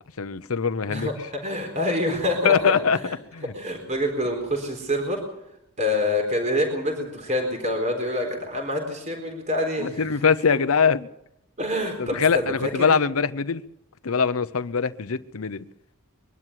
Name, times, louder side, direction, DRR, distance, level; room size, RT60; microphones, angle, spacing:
voice 1, 0.2-1.1 2.4-3.0 3.3-3.5 9.8-11.1 12.0-13.6 14.0-15.6, left 6 dB, 80° left, 13 dB, 0.8 m, -22 dB
voice 2, 0.9-2.8 3.0-3.1 3.5-5.2 5.8-10.6 11.6-12.9, left 1 dB, 35° right, 2 dB, 4.1 m, -26 dB
23.0 x 12.5 x 9.9 m, 0.81 s
head